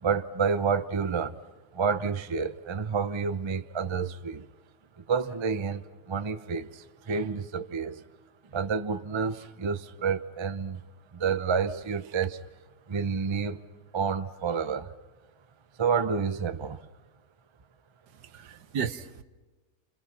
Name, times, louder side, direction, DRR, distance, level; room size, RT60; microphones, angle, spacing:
voice 1, 0.0-1.4 1.7-4.5 5.0-8.0 8.5-10.8 11.1-12.4 12.9-13.6 13.9-14.9 15.8-16.8, right 5 dB, 30° right, 0.5 m, -29 dB
voice 2, 18.1-19.2, right 7 dB, 80° right, 1.6 m, -35 dB
30.0 x 27.0 x 5.9 m
omnidirectional pair, 1.7 m